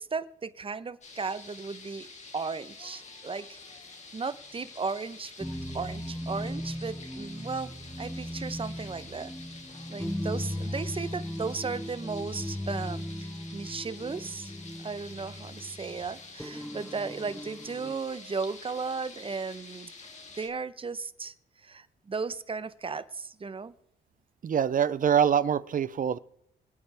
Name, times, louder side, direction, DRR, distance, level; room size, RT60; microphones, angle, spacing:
voice 1, 0.0-2.1 2.3-3.6 4.1-5.5 5.7-7.7 8.0-9.3 9.9-14.5 14.8-19.9 20.3-21.3 21.6-23.7, right 4 dB, 25° right, 14 dB, 0.9 m, -35 dB
movie stereo fountain, 1.0-20.5, left 3 dB, 35° left, 2.6 m, -48 dB
sound 1, 5.4-17.9, equal, ahead, 1.2 m, -37 dB
voice 2, 24.4-26.2, right 8 dB, 45° right, 17 dB, 0.6 m, -24 dB
25.5 x 8.8 x 3.5 m, 0.74 s
cardioid pair, 90°, 20 cm